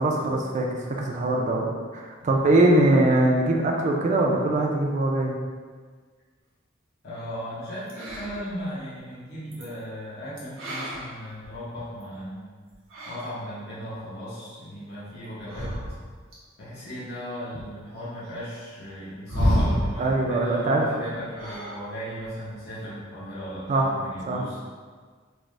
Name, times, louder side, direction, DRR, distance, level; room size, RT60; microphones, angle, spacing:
voice 1, 0.0-5.4 20.0-20.9 23.7-23.9 24.3-24.5, right 2 dB, 35° right, 0 dB, 0.3 m, -22 dB
voice 2, 7.0-12.6 13.1-15.7 16.6-24.6, equal, 55° left, -10 dB, 0.8 m, -36 dB
sound 1, 7.9-8.6 9.5-9.6 10.4-12.0 12.7-13.4 15.4-16.3 17.5-17.6 19.3-20.1 21.3-21.9 22.2-22.5, equal, 80° right, 0.8 m, -28 dB
3.2 x 2.0 x 2.5 m, 1.6 s
head